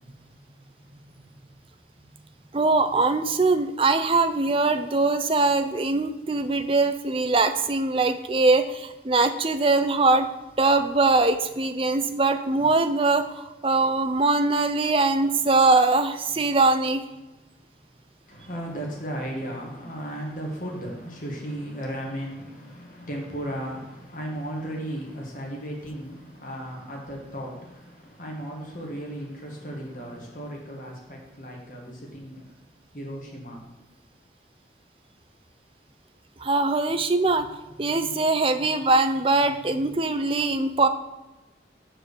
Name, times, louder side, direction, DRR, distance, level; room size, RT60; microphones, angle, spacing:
voice 1, 2.5-10.3 10.6-17.0 36.4-37.5 37.8-40.9, right 3 dB, 30° right, 9 dB, 0.5 m, -22 dB
voice 2, 18.3-32.5 32.9-33.7, right 1 dB, 45° left, -1 dB, 1.7 m, -35 dB
7.5 x 4.7 x 6.7 m, 1.1 s
head